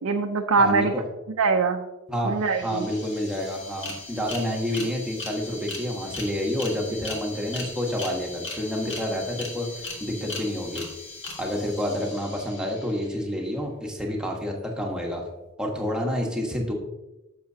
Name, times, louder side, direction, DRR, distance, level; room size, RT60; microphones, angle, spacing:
voice 1, 0.0-1.0 1.4-1.9 2.2-2.9, right 4 dB, 75° right, 3 dB, 0.6 m, -23 dB
voice 2, 0.6-1.1 2.1-2.4 2.6-10.9 11.4-15.2 15.6-16.7, equal, 5° right, -1 dB, 1.3 m, -29 dB
sound 1, 2.1-2.2 2.4-13.2, left 2 dB, 60° left, 1.8 m, -38 dB
10.5 x 7.1 x 2.8 m, 0.99 s
head